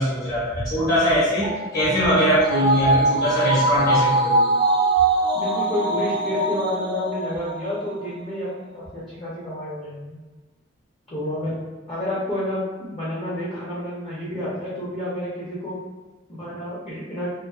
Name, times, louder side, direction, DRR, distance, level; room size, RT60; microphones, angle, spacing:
voice 1, 0.0-4.5, equal, 50° left, -11 dB, 1.0 m, -21 dB
sound 1, 1.4-8.1 8.4-8.5, right 2 dB, 25° right, 0.4 m, -22 dB
voice 2, 5.3-10.2 11.1-11.6 11.9-15.8 16.3-17.3, left 1 dB, 30° left, -9 dB, 0.6 m, -30 dB
2.5 x 2.4 x 2.3 m, 1.2 s
head